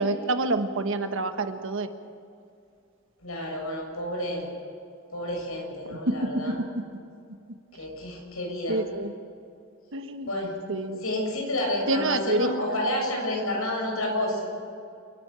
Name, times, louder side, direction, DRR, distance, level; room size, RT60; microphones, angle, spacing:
voice 1, 0.0-1.9 5.9-6.4 8.7-9.1 9.9-10.3 10.7-11.0 11.9-12.8, right 2 dB, 65° right, 8 dB, 1.4 m, -27 dB
voice 2, 3.2-4.4 5.1-6.6 7.7-8.8 10.3-10.6 11.0-14.5, left 1 dB, 85° left, 0 dB, 7.2 m, -30 dB
28.5 x 12.5 x 8.9 m, 2.4 s
head